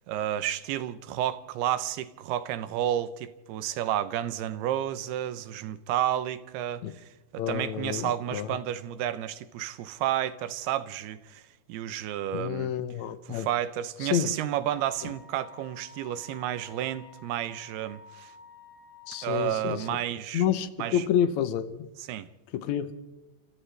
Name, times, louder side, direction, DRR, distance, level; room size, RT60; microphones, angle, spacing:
voice 1, 0.1-7.0 7.3-11.4 11.7-12.7 13.3-18.3 19.2-20.4 20.8-21.0 22.0-22.3, right 12 dB, 90° right, 2.9 m, -31 dB
voice 2, 7.4-8.6 12.3-13.5 14.0-14.3 15.0-15.1 19.1-20.0 20.3-21.9 22.5-22.9, left 9 dB, 80° left, 1.6 m, -29 dB
Wind instrument woodwind instrument, 14.7-19.6, left 4 dB, 40° left, 2.8 m, -51 dB
28.5 x 27.5 x 3.4 m
omnidirectional pair, 4.4 m